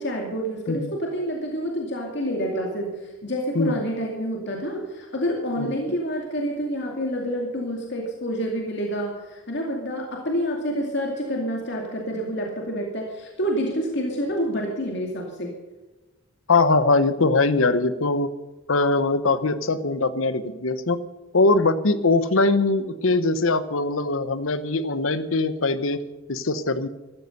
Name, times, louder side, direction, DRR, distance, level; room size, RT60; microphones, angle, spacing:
voice 1, 0.0-15.5, equal, 60° left, 0 dB, 2.4 m, -28 dB
voice 2, 16.5-18.3 18.7-21.0 21.3-26.0 26.3-26.9, left 3 dB, 80° left, 14 dB, 1.0 m, -21 dB
14.0 x 14.0 x 6.6 m, 1.1 s
head